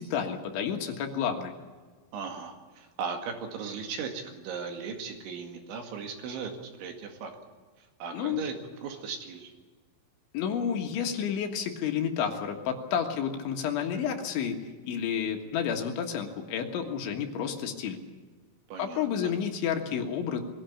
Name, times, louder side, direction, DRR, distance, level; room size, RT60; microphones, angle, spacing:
voice 1, 0.0-1.5 8.1-8.4 10.3-14.6 14.8-18.0 18.8-20.4, left 8 dB, 70° left, 4 dB, 3.8 m, -30 dB
voice 2, 2.1-7.3 7.8-8.6 8.8-9.5 18.7-19.3, right 6 dB, 65° right, 4 dB, 4.2 m, -37 dB
22.5 x 16.5 x 8.5 m, 1.4 s
omnidirectional pair, 6.0 m